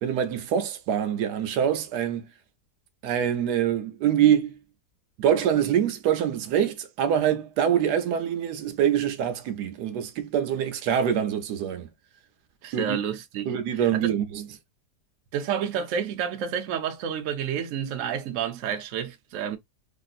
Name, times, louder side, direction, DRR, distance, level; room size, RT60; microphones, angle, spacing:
voice 1, 0.0-2.3 3.0-4.6 5.2-11.9 12.7-13.0 13.5-14.4, right 9 dB, 80° right, 1.2 m, -25 dB
voice 2, 12.6-14.1 15.3-19.6, right 8 dB, 65° right, 0.9 m, -30 dB
3.3 x 2.6 x 2.4 m
omnidirectional pair, 1.7 m